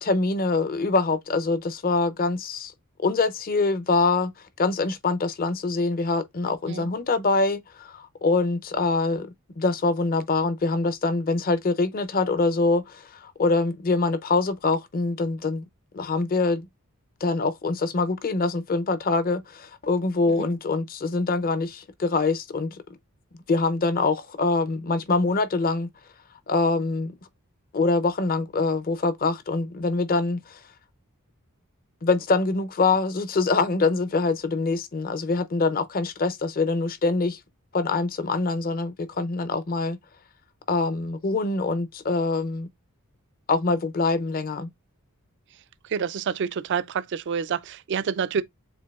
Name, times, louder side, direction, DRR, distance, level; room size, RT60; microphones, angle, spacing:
voice 1, 0.0-2.7 3.0-4.3 4.6-15.6 15.9-16.7 17.2-22.8 23.5-25.9 26.5-27.2 27.7-30.6 32.0-37.4 37.7-40.0 40.7-42.7 43.5-44.7, left 3 dB, 40° left, 0.6 m, -24 dB
voice 2, 45.9-48.4, right 6 dB, 55° right, 0.4 m, -28 dB
7.1 x 2.6 x 2.3 m
head